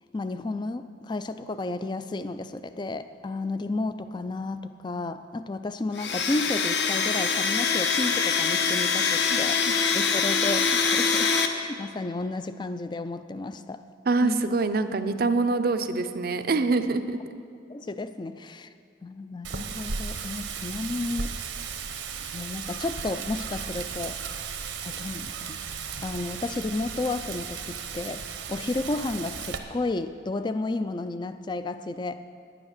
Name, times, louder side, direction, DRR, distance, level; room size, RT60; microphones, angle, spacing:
voice 1, 0.1-9.6 9.9-13.8 14.2-14.5 17.7-18.7 19.0-21.3 22.3-24.2 24.8-32.2, left 2 dB, 20° left, 12 dB, 0.3 m, -32 dB
Domestic sounds home sounds, 5.9-11.5, left 5 dB, 60° left, 0.7 m, -24 dB
voice 2, 14.1-17.2, right 3 dB, 50° right, 9 dB, 0.5 m, -25 dB
Wind, 19.4-29.6, right 6 dB, 70° right, 0.9 m, -35 dB
10.0 x 9.9 x 6.5 m, 2.4 s
head